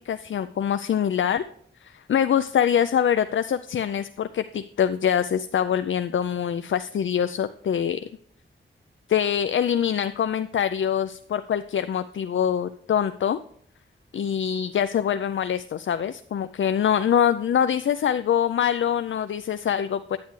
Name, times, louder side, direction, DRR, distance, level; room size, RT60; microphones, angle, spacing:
voice 1, 0.0-1.4 1.8-8.0 9.1-13.4 14.1-20.2, left 9 dB, 75° left, 11 dB, 0.4 m, -24 dB
9.5 x 9.3 x 3.1 m, 0.65 s
wide cardioid pair, 130°, 20 cm